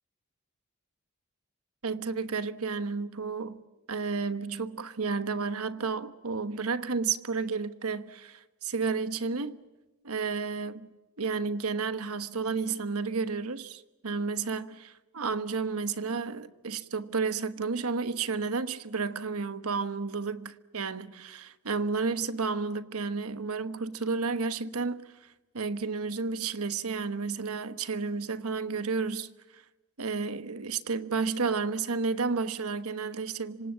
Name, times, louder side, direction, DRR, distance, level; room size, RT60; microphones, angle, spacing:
voice 1, 1.8-3.6 3.9-9.6 10.0-10.9 11.2-25.1 25.5-29.3 29.5-29.6 30.0-33.7, right 4 dB, 80° right, 1.2 m, -31 dB
26.5 x 25.5 x 7.5 m
head